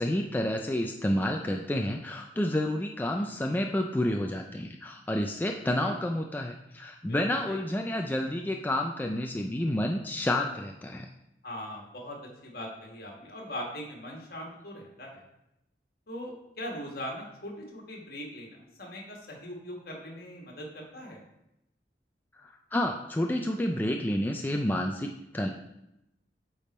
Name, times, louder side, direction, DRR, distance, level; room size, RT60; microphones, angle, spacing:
voice 1, 0.0-11.1 22.4-25.5, left 1 dB, 10° left, 2 dB, 0.3 m, -29 dB
voice 2, 5.6-6.0 7.0-7.2 7.5-7.6 11.4-15.2 16.1-21.2, equal, 60° left, 0 dB, 1.6 m, -41 dB
8.8 x 3.6 x 4.2 m, 0.86 s
head